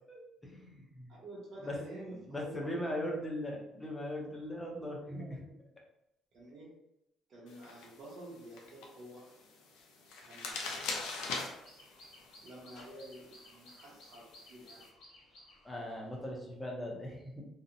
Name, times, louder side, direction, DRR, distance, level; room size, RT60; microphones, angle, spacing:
voice 1, 0.1-1.1 1.6-1.7 2.3-5.4 15.6-17.4, left 1 dB, 10° left, -1 dB, 0.5 m, -39 dB
voice 2, 1.1-3.0 4.9-5.5 6.3-6.8 7.3-9.3 10.2-11.0 12.4-14.8, right 1 dB, 40° right, -6 dB, 0.6 m, -50 dB
sound 1, 7.5-14.9, left 3 dB, 85° left, 0.5 m, -44 dB
sound 2, 10.5-16.3, left 2 dB, 70° left, 0.9 m, -58 dB
2.7 x 2.0 x 2.5 m, 0.84 s
cardioid pair, 165°, 0 cm